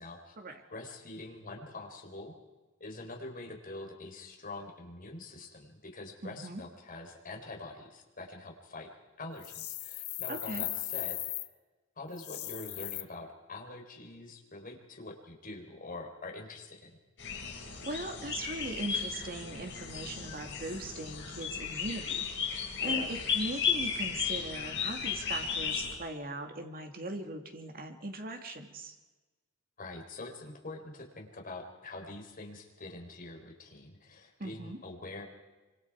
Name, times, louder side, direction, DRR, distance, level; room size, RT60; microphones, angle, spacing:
voice 1, 0.0-2.3 2.8-8.9 9.2-11.2 12.0-17.0 22.9-23.1 29.8-35.2, left 2 dB, 40° left, 1 dB, 4.1 m, -45 dB
voice 2, 6.2-6.6 10.3-10.7 17.8-28.9 34.4-34.8, right 2 dB, 45° right, 4 dB, 2.5 m, -40 dB
sound 1, 9.4-11.5 12.1-13.0, left 16 dB, 85° left, 1.2 m, -37 dB
sound 2, 17.2-25.9, left 6 dB, 60° left, 5.5 m, -35 dB
26.0 x 25.0 x 4.8 m, 1.2 s
head